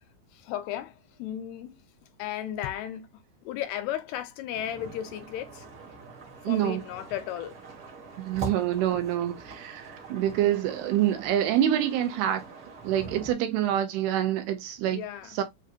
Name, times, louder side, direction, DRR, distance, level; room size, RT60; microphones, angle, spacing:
voice 1, 0.3-5.7 6.4-7.6 14.9-15.4, left 11 dB, 85° left, 2.5 m, -35 dB
sound 1, 4.5-13.3, right 4 dB, 60° right, 1.3 m, -43 dB
voice 2, 6.4-6.8 8.2-12.5 12.8-15.0 15.4-15.5, right 11 dB, 85° right, 2.4 m, -26 dB
6.5 x 2.5 x 2.5 m
omnidirectional pair, 4.9 m